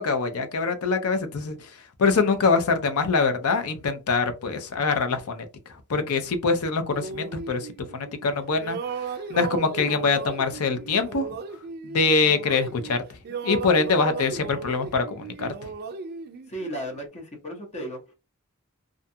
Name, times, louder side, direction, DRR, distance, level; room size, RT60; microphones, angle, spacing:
voice 1, 0.0-1.6 2.0-5.5 5.9-8.8 9.3-11.3 11.8-13.2 13.4-15.5, left 4 dB, 70° left, 0.5 m, -24 dB
sound 1, 6.9-8.3 8.6-13.0 13.2-17.1, right 5 dB, 45° right, 0.3 m, -36 dB
voice 2, 16.5-18.1, right 1 dB, 30° left, 0.7 m, -35 dB
2.5 x 2.3 x 2.7 m
head